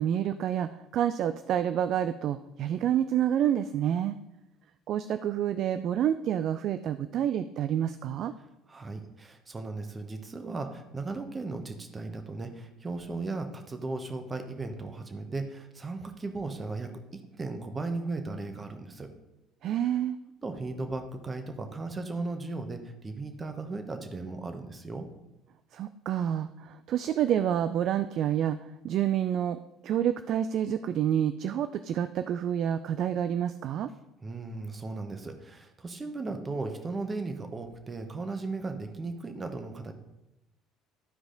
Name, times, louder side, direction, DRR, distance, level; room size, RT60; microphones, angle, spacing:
voice 1, 0.0-4.2 4.9-8.3 19.6-20.2 25.7-33.9, right 10 dB, 55° right, 11 dB, 0.3 m, -28 dB
voice 2, 8.7-19.1 20.4-25.1 34.2-39.9, right 3 dB, 25° right, 6 dB, 1.2 m, -36 dB
12.5 x 4.8 x 3.9 m, 0.93 s
hypercardioid pair, 60°, 0 cm